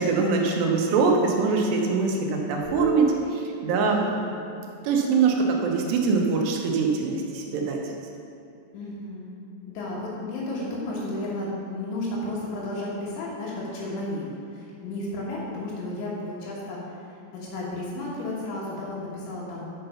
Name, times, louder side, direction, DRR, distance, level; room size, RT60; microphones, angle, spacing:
voice 1, 0.0-4.0 4.8-7.8, right 4 dB, 75° right, 1 dB, 2.9 m, -23 dB
sound 1, 2.6-6.1, right 5 dB, 65° left, 0.9 m, -37 dB
voice 2, 3.7-4.4 8.7-9.3 9.8-16.8 17.3-19.6, left 1 dB, 80° left, -5 dB, 3.6 m, -33 dB
6.8 x 6.7 x 5.6 m, 2.7 s
omnidirectional pair, 5.1 m